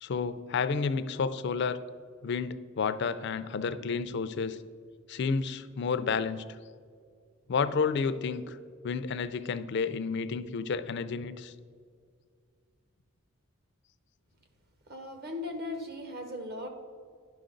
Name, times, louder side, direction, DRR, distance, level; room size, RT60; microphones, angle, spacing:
voice 1, 0.0-1.8 2.2-4.6 5.1-6.4 7.5-8.6 8.8-11.5, left 5 dB, 50° left, 12 dB, 0.4 m, -31 dB
voice 2, 14.9-16.7, left 2 dB, 45° right, 5 dB, 1.0 m, -38 dB
9.9 x 6.1 x 3.8 m, 2.1 s
head